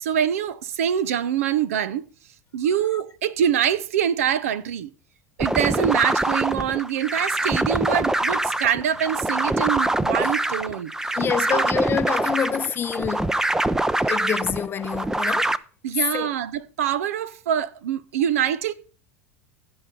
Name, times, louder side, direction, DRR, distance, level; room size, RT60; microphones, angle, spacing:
voice 1, 0.0-2.1 2.5-4.9 5.4-10.9 11.5-11.7 15.8-18.7, right 9 dB, 75° right, 0.8 m, -24 dB
sound 1, 5.4-15.6, right 1 dB, 5° right, 0.6 m, -24 dB
voice 2, 11.2-13.4 14.1-15.5 16.1-16.3, left 8 dB, 30° left, 0.7 m, -27 dB
16.0 x 6.1 x 4.0 m
hypercardioid pair, 85°, 8 cm